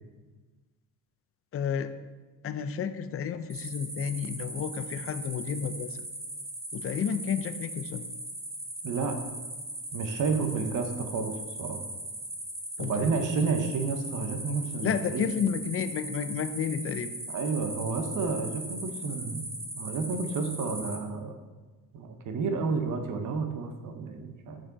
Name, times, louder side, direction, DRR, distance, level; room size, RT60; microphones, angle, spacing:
voice 1, 1.5-1.9 2.4-6.0 6.7-8.1 12.8-13.1 14.8-17.1, left 7 dB, 40° left, 11 dB, 0.5 m, -31 dB
sound 1, 3.5-21.0, right 1 dB, 15° right, 1.3 m, -39 dB
voice 2, 8.8-9.2 9.9-11.8 12.8-15.2 17.3-21.3 21.9-24.6, right 4 dB, 60° right, 6 dB, 1.0 m, -31 dB
6.5 x 6.2 x 4.0 m, 1.3 s
cardioid pair, 130°, 35 cm